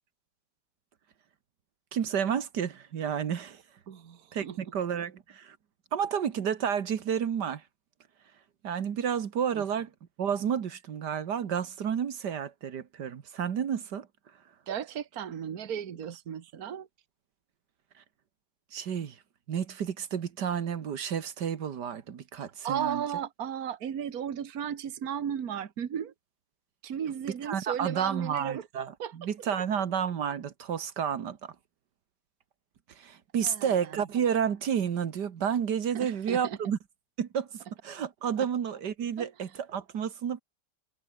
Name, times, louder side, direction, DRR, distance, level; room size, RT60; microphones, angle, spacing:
voice 1, 1.9-3.6 4.3-5.6 5.9-7.6 8.6-9.9 10.2-14.1 18.7-19.2 19.5-23.0 27.4-31.5 32.9-36.8 37.2-40.4, right 8 dB, 80° right, 2.0 m, -31 dB
voice 2, 3.9-4.6 9.6-9.7 14.7-16.9 22.6-26.1 26.8-28.7 29.0-29.3 33.4-34.0 35.9-36.6 38.4-38.5 39.2-39.3, right 9 dB, 60° right, 1.8 m, -35 dB
omnidirectional pair, 1.8 m